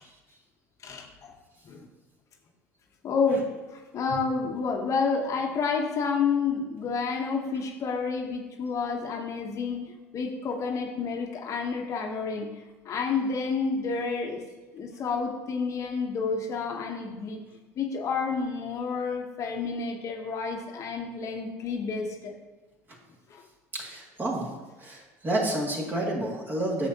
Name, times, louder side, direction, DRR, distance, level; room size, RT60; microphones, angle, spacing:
voice 1, 0.8-1.3 1.6-1.9 3.0-9.8 10.1-12.5 12.8-14.4 14.7-17.4 17.8-22.3 23.3-23.4, left 5 dB, 45° left, 2 dB, 1.0 m, -29 dB
voice 2, 23.7-24.5 24.8-26.9, right 1 dB, 25° right, -3 dB, 2.2 m, -29 dB
8.8 x 6.8 x 2.8 m, 1.2 s
supercardioid pair, 100°, 8 cm